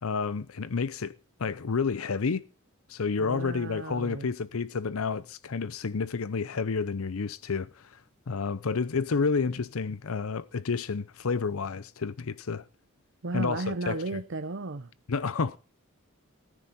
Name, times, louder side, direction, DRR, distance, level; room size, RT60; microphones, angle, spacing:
voice 1, 0.0-2.5 2.9-8.0 8.3-12.6 13.3-14.2 15.1-15.6, left 5 dB, 90° left, 0.7 m, -30 dB
voice 2, 3.2-4.3 13.2-14.9, right 2 dB, 60° right, 0.8 m, -34 dB
14.5 x 14.0 x 4.2 m
head